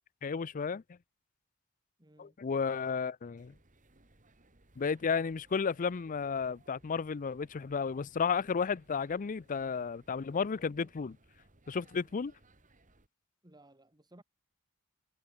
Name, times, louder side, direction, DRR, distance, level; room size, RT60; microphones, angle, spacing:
voice 1, 0.2-0.8 2.2-3.5 4.8-11.2 11.7-12.3, left 5 dB, 40° left, 0.4 m, -33 dB
voice 2, 2.0-2.4 13.4-14.2, right 1 dB, 20° right, 3.2 m, -59 dB
sound 1, 3.4-13.1, right 2 dB, 40° right, 2.6 m, -65 dB
head